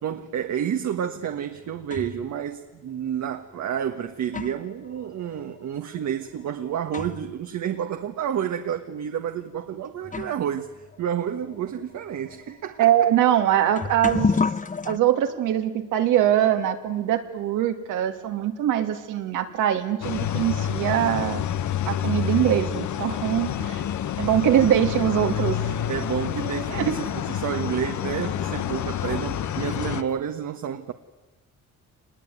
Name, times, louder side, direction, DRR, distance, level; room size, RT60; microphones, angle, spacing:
voice 1, 0.0-13.1 25.9-30.9, right 9 dB, 65° right, 1.6 m, -30 dB
sound 1, 1.2-2.3 3.2-3.3 4.0-7.4 7.7-7.8 8.6-8.8 9.6-9.7 10.0-15.0, left 4 dB, 25° left, 1.0 m, -32 dB
voice 2, 12.8-14.3 14.8-21.4 21.8-23.8 24.2-25.6 26.7-26.9, right 11 dB, 90° right, 2.7 m, -22 dB
sound 2, 20.0-30.0, left 10 dB, 70° left, 1.4 m, -28 dB
26.0 x 20.5 x 9.6 m
cardioid pair, 90°, 30 cm